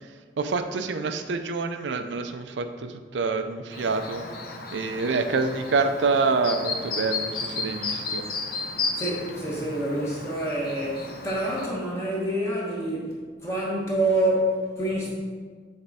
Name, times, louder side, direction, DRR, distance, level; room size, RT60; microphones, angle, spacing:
voice 1, 0.0-4.3 4.7-8.2, right 4 dB, 85° right, 8 dB, 0.5 m, -27 dB
Chirp tweet, 3.7-11.7, left 3 dB, 55° left, 0.7 m, -33 dB
voice 2, 9.0-13.1 13.4-15.2, right 1 dB, 15° left, -6 dB, 1.1 m, -27 dB
7.5 x 3.4 x 4.1 m, 1.5 s
head